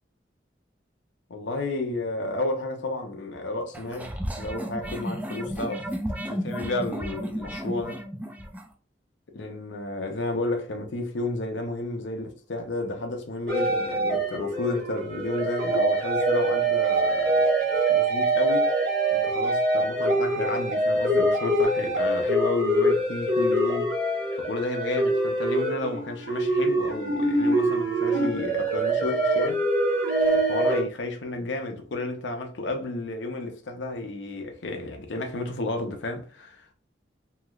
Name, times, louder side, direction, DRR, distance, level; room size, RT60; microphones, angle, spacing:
voice 1, 1.3-5.9 6.3-8.0 9.3-17.5 17.9-18.7 19.1-23.9 24.4-29.6 30.5-36.7, left 2 dB, 90° left, 0.6 m, -32 dB
sound 1, 3.7-8.7, equal, 10° right, 0.3 m, -33 dB
sound 2, 13.5-30.8, right 1 dB, 55° right, 1.3 m, -24 dB
3.1 x 2.8 x 2.3 m
head